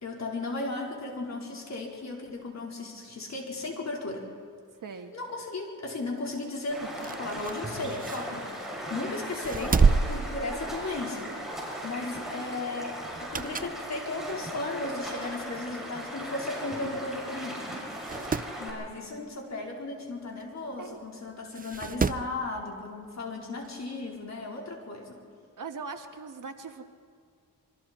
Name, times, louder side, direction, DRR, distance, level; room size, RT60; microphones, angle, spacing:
voice 1, 0.0-4.3 5.1-11.3 11.8-17.6 18.6-25.2, left 2 dB, 50° left, -1 dB, 4.4 m, -36 dB
voice 2, 4.8-5.1 7.0-7.1 20.8-21.0 25.6-26.8, right 4 dB, 65° right, 6 dB, 1.6 m, -40 dB
Stream, 6.7-18.7, equal, ahead, 6.7 m, -38 dB
sound 1, 6.8-8.8 9.3-11.2 11.5-11.7 13.0-13.8 14.3-14.4 15.3-15.4 15.6-15.7 15.9-16.0 16.9-17.1 17.4-17.5 17.9-18.5 20.4-20.5 21.5-22.3 23.6-23.7, right 5 dB, 25° right, 0.5 m, -29 dB
26.5 x 23.5 x 4.5 m, 2.1 s
wide cardioid pair, 105°, 34 cm